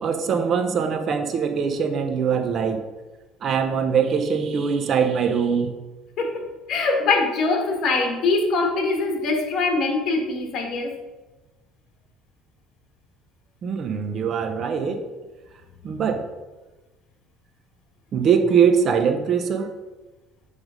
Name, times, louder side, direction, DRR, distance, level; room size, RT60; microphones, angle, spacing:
voice 1, 0.0-2.8 3.4-5.7 13.6-15.0 15.8-16.2 18.1-19.7, right 6 dB, 45° right, 7 dB, 0.7 m, -22 dB
voice 2, 6.2-11.0, left 3 dB, 55° left, 2 dB, 1.6 m, -23 dB
8.1 x 3.5 x 5.0 m, 1.2 s
supercardioid pair, 100°, 0 cm